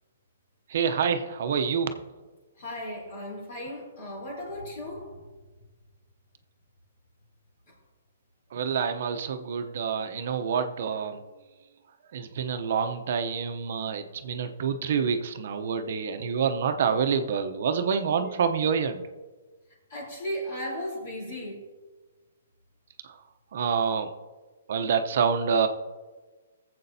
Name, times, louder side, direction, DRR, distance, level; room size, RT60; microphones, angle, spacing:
voice 1, 0.7-1.9 8.5-11.2 12.1-19.0 23.5-24.1 24.7-25.7, right 6 dB, 55° right, 8 dB, 0.7 m, -27 dB
voice 2, 2.6-5.1 18.2-18.3 19.9-21.6, equal, 45° left, -4 dB, 3.5 m, -36 dB
18.5 x 7.6 x 2.7 m, 1.3 s
hypercardioid pair, 165°, 0 cm